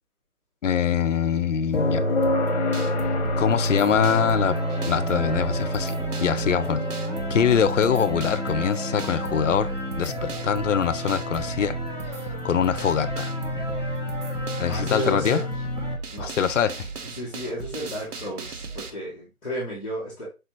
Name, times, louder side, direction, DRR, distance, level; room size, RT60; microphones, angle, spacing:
voice 1, 0.6-2.0 3.4-4.6 4.9-6.0 6.2-6.8 7.3-9.7 10.0-11.8 12.4-13.3 14.6-15.4 16.2-16.9, left 7 dB, 55° left, 0.6 m, -23 dB
sound 1, 1.7-15.6 17.8-17.9, left 1 dB, 25° left, 0.9 m, -29 dB
sound 2, 2.2-18.9, right 4 dB, 85° right, 0.9 m, -36 dB
sound 3, 4.1-15.9, equal, 25° right, 1.2 m, -33 dB
voice 2, 14.6-15.5 16.1-16.3 17.2-20.3, equal, ahead, 1.0 m, -32 dB
4.8 x 3.0 x 2.9 m
figure-of-eight pair, 160°, 44 cm